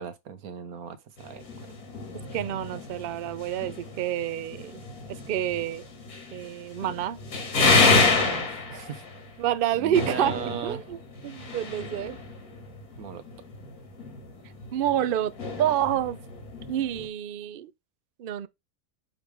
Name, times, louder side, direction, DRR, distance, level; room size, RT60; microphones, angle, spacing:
voice 1, 0.0-1.5 7.9-9.0 9.8-10.8 13.0-13.2, right 7 dB, 85° right, 1.3 m, -38 dB
sound 1, 1.2-17.1, left 3 dB, 90° left, 2.2 m, -29 dB
voice 2, 2.3-4.8 5.1-5.8 6.3-7.2 7.6-8.5 9.4-11.0 11.2-12.2 14.7-15.3 15.6-16.2 16.7-17.7 18.2-18.5, right 11 dB, 65° right, 0.5 m, -28 dB
9.1 x 3.2 x 3.5 m
omnidirectional pair, 1.5 m